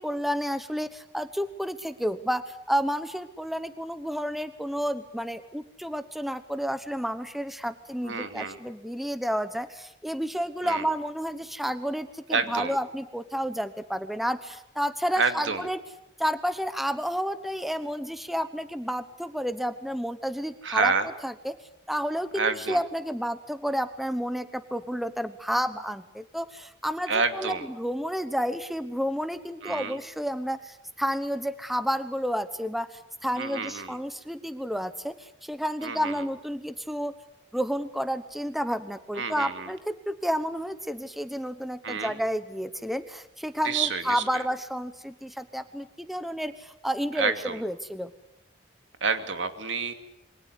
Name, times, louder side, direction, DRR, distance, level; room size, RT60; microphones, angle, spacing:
voice 1, 0.0-15.8 16.2-20.9 21.2-21.6 21.9-37.1 37.5-48.1, equal, ahead, 11 dB, 1.0 m, -31 dB
voice 2, 8.0-8.6 10.6-10.8 12.3-12.8 15.2-15.6 20.6-21.1 22.3-22.8 27.1-27.6 29.6-30.0 33.4-34.0 35.8-36.1 39.2-39.7 41.8-42.2 43.6-44.2 47.2-47.6 49.0-49.9, right 4 dB, 80° right, 8 dB, 2.6 m, -28 dB
27.5 x 23.5 x 8.3 m, 0.79 s
head